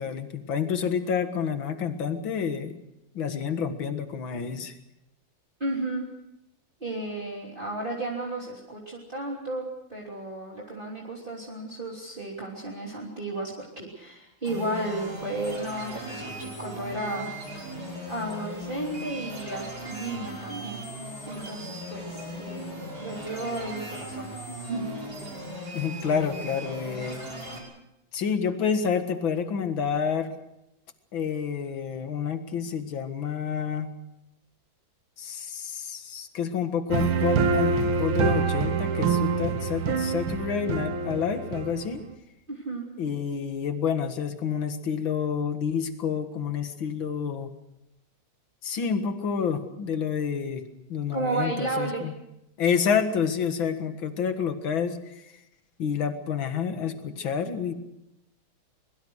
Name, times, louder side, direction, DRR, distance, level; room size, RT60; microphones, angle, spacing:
voice 1, 0.0-2.8 3.1-4.8 25.7-27.2 28.1-30.3 31.1-33.9 35.2-42.0 43.0-47.5 48.6-50.6 50.9-52.1 52.6-55.3 55.8-57.7, left 7 dB, 70° left, 8 dB, 2.5 m, -29 dB
voice 2, 5.6-6.1 6.8-17.3 18.1-22.7 23.0-24.3 24.6-24.9 42.5-42.9 51.1-52.0, right 2 dB, 25° right, -3 dB, 3.5 m, -33 dB
sound 1, 14.4-27.6, equal, 50° right, 6.5 m, -38 dB
sound 2, 36.9-42.1, right 5 dB, 90° right, 2.3 m, -26 dB
23.5 x 22.5 x 6.4 m, 0.86 s
omnidirectional pair, 2.2 m